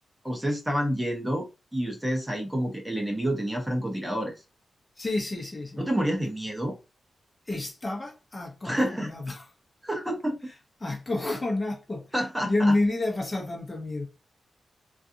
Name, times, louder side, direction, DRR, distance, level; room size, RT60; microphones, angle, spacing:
voice 1, 0.2-1.5 1.7-4.3 5.8-6.7 8.6-9.1 9.8-10.4 12.1-12.7, equal, 10° right, 0.8 m, -28 dB
voice 2, 5.0-5.8 7.5-9.5 10.8-12.0 12.4-14.0, left 2 dB, 20° left, 0.8 m, -29 dB
3.9 x 2.4 x 2.6 m
wide cardioid pair, 140°, 0 cm